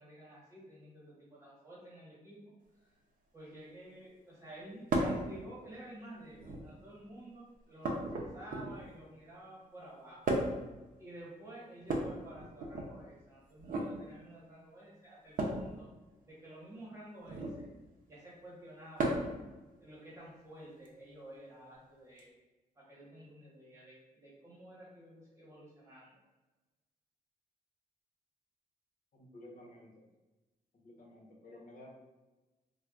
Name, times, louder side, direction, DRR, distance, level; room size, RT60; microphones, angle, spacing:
voice 1, 0.0-2.4 2.8-2.9 3.3-10.3 11.0-15.9 16.2-17.7 18.1-19.3 19.8-22.3 22.7-26.2, right 1 dB, 20° right, -8 dB, 1.2 m, -51 dB
sound 1, 4.9-5.2 6.3-6.8 7.8-8.9 10.3-10.7 11.8-12.9 13.6-13.9 15.4-15.7 17.2-17.6 19.0-19.4 20.9-21.0 22.2-22.3, right 2 dB, 60° right, 0.6 m, -34 dB
voice 2, 29.1-30.1 30.8-31.9, left 1 dB, 65° left, -3 dB, 0.9 m, -53 dB
4.3 x 2.2 x 2.3 m, 1.1 s
wide cardioid pair, 125°, 15 cm